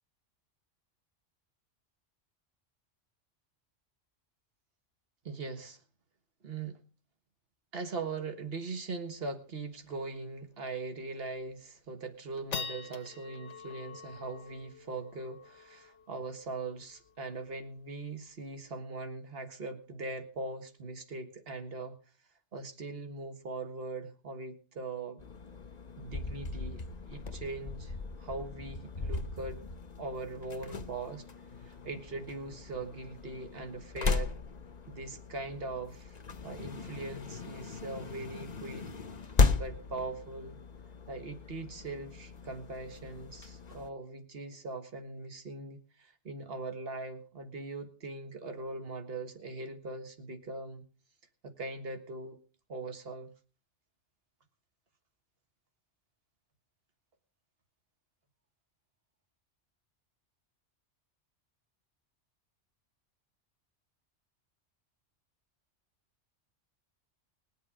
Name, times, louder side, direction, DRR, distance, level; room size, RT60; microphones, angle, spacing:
voice 1, 5.2-5.8 6.4-6.8 7.7-22.0 22.5-25.2 26.0-29.6 30.0-31.2 31.6-34.3 34.9-36.2 36.4-38.9 39.5-40.6 41.1-50.8 51.4-52.4 52.7-53.3, right 3 dB, 55° right, 7 dB, 1.8 m, -41 dB
sound 1, 9.0-9.1 9.4-9.5 9.9-10.1 10.6-10.7 11.2-11.6 12.0-18.6, left 6 dB, 80° left, 1.3 m, -46 dB
sound 2, 25.2-43.9, left 4 dB, 40° left, 0.9 m, -36 dB
20.0 x 8.0 x 5.0 m, 0.36 s
omnidirectional pair, 1.2 m